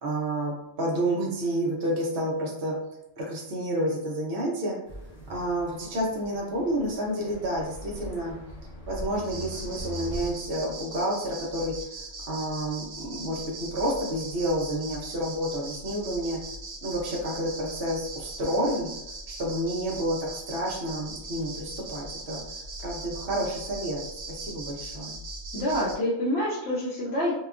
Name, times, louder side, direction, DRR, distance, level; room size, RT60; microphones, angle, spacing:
voice 1, 0.0-2.7 3.2-4.8 5.3-8.3 8.9-11.9 12.3-16.4 16.8-18.9 19.3-22.4 22.8-25.2, right 1 dB, 55° right, -3 dB, 0.8 m, -30 dB
sound 1, 4.9-10.4, equal, 35° left, 1.0 m, -41 dB
sound 2, 9.2-26.0, right 2 dB, 85° right, 1.1 m, -40 dB
voice 2, 25.5-27.3, equal, 60° left, -8 dB, 0.8 m, -27 dB
2.8 x 2.2 x 2.4 m, 0.86 s
omnidirectional pair, 1.5 m